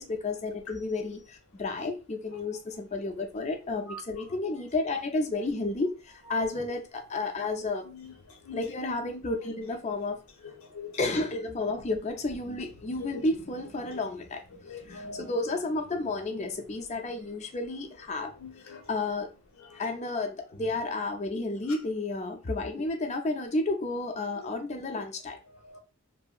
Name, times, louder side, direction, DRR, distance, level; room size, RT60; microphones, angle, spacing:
voice 1, 0.0-7.9 8.5-10.2 11.0-14.4 14.8-18.3 18.6-19.3 19.7-25.4, left 2 dB, 30° left, 0.4 m, -32 dB
voice 2, 10.4-11.0 11.7-11.8 13.9-14.0 14.6-15.3 18.4-18.9 19.6-19.8 20.5-20.7 24.4-24.5 25.5-25.8, left 3 dB, 75° left, 0.7 m, -44 dB
2.8 x 2.6 x 2.3 m
head